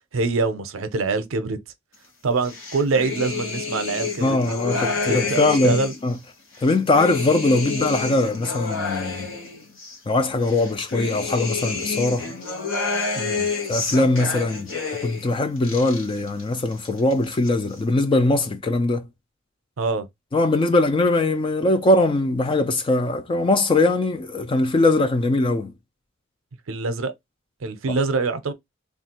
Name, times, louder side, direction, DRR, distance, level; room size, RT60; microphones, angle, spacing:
voice 1, 0.1-1.6 2.2-5.9 13.1-13.5 19.8-20.1 26.7-27.1 27.6-28.5, right 3 dB, 85° right, 0.6 m, -25 dB
sound 1, 2.4-6.1 6.5-10.0 10.4-15.3 15.6-16.4 16.7-17.5, left 4 dB, 75° left, 0.9 m, -29 dB
voice 2, 4.2-6.1 6.6-9.3 10.1-12.3 13.7-14.7 15.0-19.1 20.3-25.7, left 2 dB, 25° left, 0.3 m, -21 dB
3.2 x 2.3 x 2.8 m
head